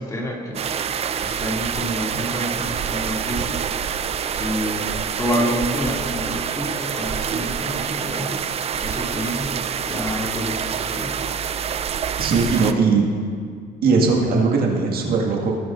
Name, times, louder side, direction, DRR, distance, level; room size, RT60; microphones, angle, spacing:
voice 1, 0.0-11.2 12.4-12.9, equal, 20° left, -2 dB, 2.4 m, -29 dB
sound 1, 0.5-12.7, right 7 dB, 35° right, 0.5 m, -26 dB
voice 2, 12.2-13.0 13.8-15.6, right 4 dB, 65° right, -1 dB, 1.8 m, -19 dB
19.5 x 9.3 x 2.5 m, 2.1 s
cardioid pair, 110°, 17 cm